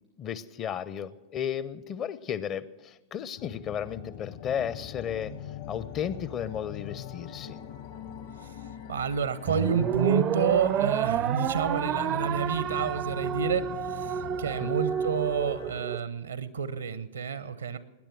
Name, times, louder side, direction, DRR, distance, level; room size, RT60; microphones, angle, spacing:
voice 1, 0.2-5.3 5.7-7.6 14.6-14.8, left 8 dB, 30° left, 18 dB, 0.6 m, -34 dB
sound 1, 3.4-15.8, left 10 dB, 55° left, 1.0 m, -43 dB
voice 2, 8.9-17.8, right 6 dB, 70° right, 16 dB, 0.8 m, -29 dB
sound 2, 9.5-16.0, right 9 dB, 30° right, 0.4 m, -29 dB
19.0 x 10.5 x 6.2 m, 1.1 s
figure-of-eight pair, 90°, 0 cm